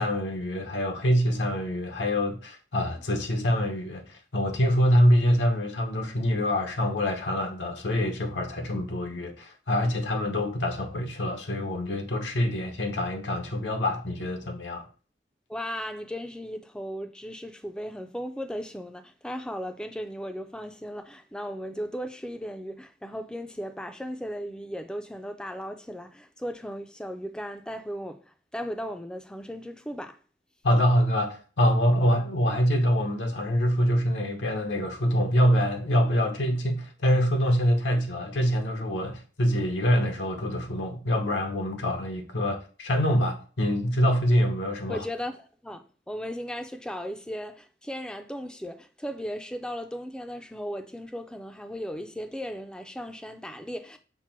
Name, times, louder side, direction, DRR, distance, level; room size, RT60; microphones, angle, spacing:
voice 1, 0.0-14.9 30.6-45.1, equal, 80° left, 0.9 m, -25 dB
voice 2, 15.5-30.2 44.9-54.0, equal, 5° left, 0.4 m, -36 dB
5.9 x 2.1 x 4.4 m
head